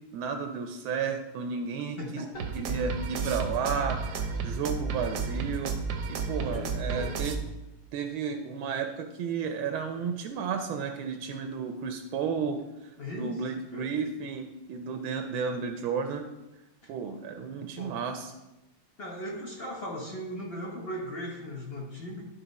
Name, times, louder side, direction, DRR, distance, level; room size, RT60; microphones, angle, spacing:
voice 1, 0.1-2.3 2.5-5.8 6.1-7.4 7.9-16.2 16.9-18.3, right 6 dB, 80° right, 6 dB, 1.4 m, -33 dB
voice 2, 2.0-2.5 6.4-7.3 13.0-13.4 13.7-13.9 16.8-16.9 17.8-18.0 19.0-22.2, left 1 dB, 50° left, 0 dB, 0.7 m, -38 dB
sound 1, 2.3-7.4, right 5 dB, 65° right, 1.1 m, -32 dB
11.5 x 4.0 x 4.0 m, 0.98 s
omnidirectional pair, 2.3 m